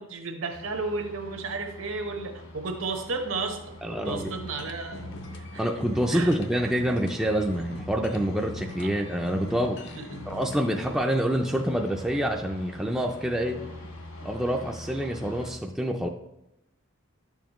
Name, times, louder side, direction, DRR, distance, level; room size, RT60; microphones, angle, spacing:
voice 1, 0.0-5.6 6.1-6.3 8.8-8.9 9.9-10.2, right 3 dB, 65° right, 4 dB, 1.1 m, -33 dB
sound 1, 0.5-15.5, left 1 dB, 80° left, 2.2 m, -45 dB
voice 2, 3.8-4.3 5.6-9.8 10.3-13.6 14.2-16.1, equal, 5° right, 0 dB, 0.4 m, -27 dB
sound 2, 4.0-10.9, left 1 dB, 60° left, 0.7 m, -42 dB
11.0 x 7.1 x 3.0 m, 0.85 s
head